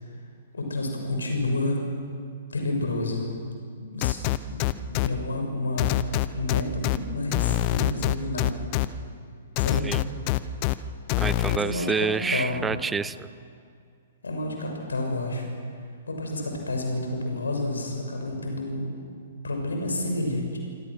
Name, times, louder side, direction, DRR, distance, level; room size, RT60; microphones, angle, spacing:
voice 1, 0.5-1.8 2.5-3.3 3.8-4.2 4.5-4.6 4.9-6.0 6.3-8.6 9.6-9.9 11.5-12.6 14.2-15.5 16.1-18.9 19.4-20.6, left 2 dB, 70° left, 2 dB, 6.6 m, -29 dB
sound 1, 4.0-5.1 5.8-7.0 7.3-8.9 9.6-10.7 11.1-11.6, left 17 dB, 35° left, 0.8 m, -24 dB
voice 2, 11.2-13.3, right 5 dB, 10° right, 17 dB, 0.6 m, -28 dB
26.0 x 25.0 x 6.3 m, 2.2 s
figure-of-eight pair, 115°, 0 cm